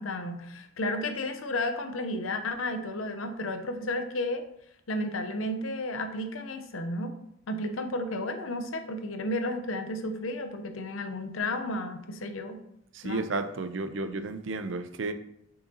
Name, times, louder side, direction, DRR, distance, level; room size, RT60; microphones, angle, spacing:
voice 1, 0.0-4.4 4.9-7.1 7.5-12.6 13.0-13.2, left 1 dB, 90° left, 7 dB, 0.8 m, -32 dB
voice 2, 12.9-15.1, right 3 dB, 65° right, 9 dB, 0.6 m, -32 dB
6.4 x 5.6 x 2.8 m, 0.74 s
head